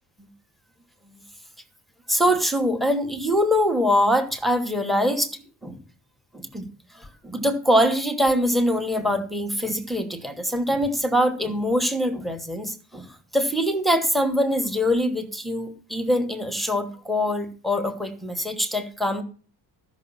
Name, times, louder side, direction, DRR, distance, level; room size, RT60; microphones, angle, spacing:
voice 1, 2.1-5.8 6.3-6.7 6.9-13.1 13.3-19.2, equal, ahead, 6 dB, 1.1 m, -23 dB
14.0 x 6.0 x 5.6 m, 0.40 s
wide cardioid pair, 180°, 40 cm